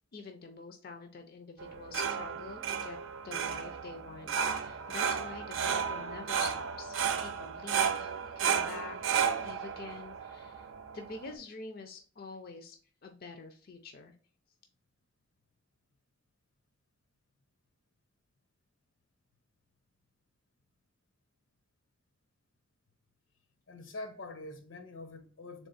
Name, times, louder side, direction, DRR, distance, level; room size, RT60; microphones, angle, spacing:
voice 1, 0.1-3.0 3.2-12.8 13.0-14.1, left 4 dB, 50° left, 0.5 m, -46 dB
sound 1, 1.6-11.3, right 7 dB, 85° right, 0.5 m, -33 dB
voice 2, 23.7-25.7, left 2 dB, 80° left, 0.9 m, -44 dB
3.5 x 3.5 x 4.0 m
head